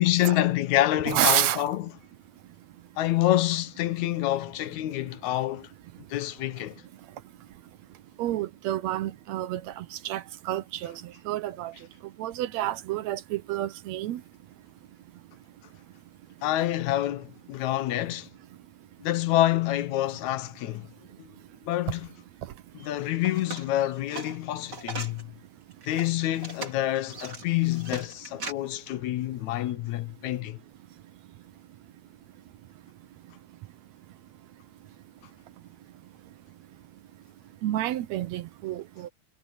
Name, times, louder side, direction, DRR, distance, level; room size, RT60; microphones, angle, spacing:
voice 1, 0.0-1.9 3.0-5.7 6.1-6.8 16.4-18.3 19.0-20.9 21.2-21.3 21.7-22.1 22.8-25.3 25.9-30.6, left 14 dB, 75° left, 2.2 m, -27 dB
voice 2, 1.1-1.6 8.2-10.9 11.3-11.7 12.2-14.2 37.6-39.1, right 13 dB, 75° right, 2.0 m, -29 dB
sound 1, 23.2-25.2 25.7-28.5, right 3 dB, 35° right, 4.2 m, -39 dB
omnidirectional pair, 3.4 m